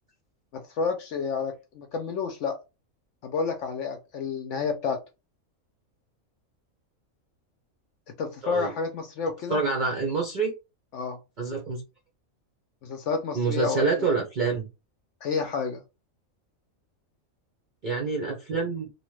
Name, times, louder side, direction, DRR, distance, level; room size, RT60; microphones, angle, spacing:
voice 1, 0.5-2.6 3.2-5.0 8.2-9.6 10.9-11.2 12.8-13.8 15.2-15.8, left 5 dB, 70° left, 0.8 m, -30 dB
voice 2, 9.5-10.5 11.4-11.8 13.3-14.7 17.8-18.9, right 4 dB, 50° right, 0.6 m, -27 dB
2.9 x 2.1 x 3.0 m
omnidirectional pair, 1.4 m